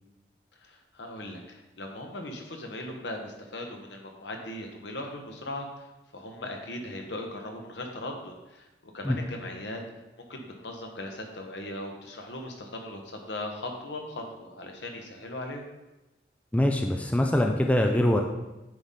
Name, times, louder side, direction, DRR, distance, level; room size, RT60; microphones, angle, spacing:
voice 1, 0.6-5.9 6.1-9.8 10.2-15.6, left 1 dB, 75° left, 2 dB, 1.1 m, -39 dB
voice 2, 16.5-18.2, left 1 dB, 10° left, 3 dB, 0.4 m, -23 dB
9.0 x 4.2 x 3.7 m, 1.0 s
head